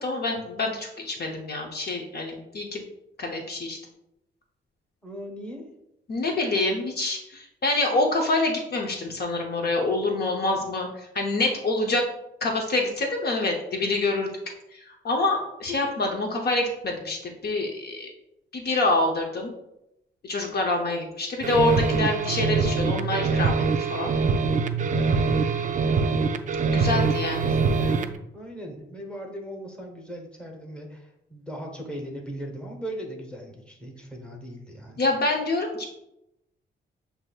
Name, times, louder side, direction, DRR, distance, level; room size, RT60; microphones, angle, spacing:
voice 1, 0.0-2.8 3.2-3.8 6.1-12.1 12.4-14.3 14.7-18.1 18.5-19.5 20.2-24.1 26.7-28.1 35.0-35.9, left 2 dB, 50° left, 2 dB, 0.7 m, -26 dB
voice 2, 5.0-5.7 15.7-15.8 27.4-27.6 28.3-35.0, equal, 5° left, 0 dB, 1.1 m, -38 dB
sound 1, 21.4-28.2, right 4 dB, 40° right, 0.4 m, -24 dB
7.4 x 2.7 x 2.3 m, 0.84 s
cardioid pair, 90°, 20 cm